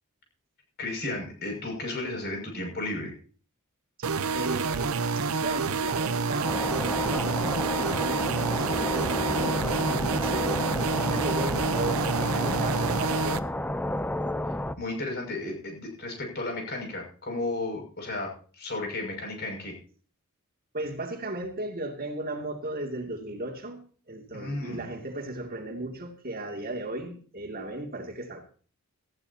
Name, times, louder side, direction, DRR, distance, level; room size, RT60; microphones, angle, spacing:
voice 1, 0.8-3.1 11.1-11.3 14.8-19.7 24.3-24.9, left 2 dB, 50° left, 1 dB, 6.3 m, -34 dB
sound 1, 4.0-13.4, right 4 dB, 75° right, 0.7 m, -28 dB
voice 2, 4.3-10.5 11.0-13.5 20.7-28.4, right 2 dB, 40° right, 2 dB, 2.5 m, -36 dB
sound 2, 6.4-14.7, left 1 dB, 5° left, 0.5 m, -31 dB
19.0 x 14.5 x 2.8 m, 0.42 s
head